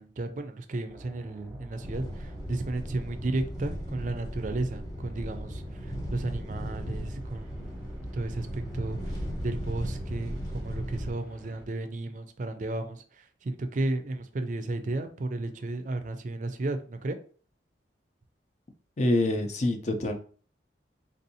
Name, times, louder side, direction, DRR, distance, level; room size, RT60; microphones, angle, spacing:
voice 1, 0.0-7.9 8.1-9.2 9.4-17.2, right 2 dB, 45° right, 8 dB, 0.4 m, -33 dB
sound 1, 0.9-11.7, equal, 10° right, 0.7 m, -48 dB
sound 2, 1.8-11.1, equal, 20° left, 0.8 m, -37 dB
voice 2, 19.0-20.1, left 1 dB, 40° left, 5 dB, 0.5 m, -26 dB
3.5 x 2.7 x 2.7 m, 0.42 s
head